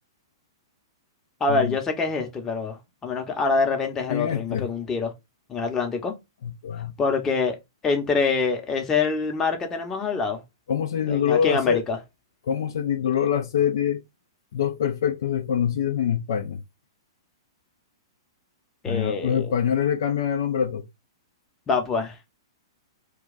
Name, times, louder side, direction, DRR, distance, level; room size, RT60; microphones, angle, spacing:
voice 1, 1.4-5.1 5.5-6.1 7.0-7.6 7.8-10.4 11.1-12.0 18.8-19.5 21.7-22.2, left 4 dB, 20° left, 0.8 m, -25 dB
voice 2, 4.1-4.7 6.4-6.9 10.7-11.8 12.4-14.0 14.5-16.6 18.9-20.8, left 8 dB, 60° left, 0.5 m, -24 dB
2.3 x 2.3 x 3.9 m
figure-of-eight pair, 110°, 2 cm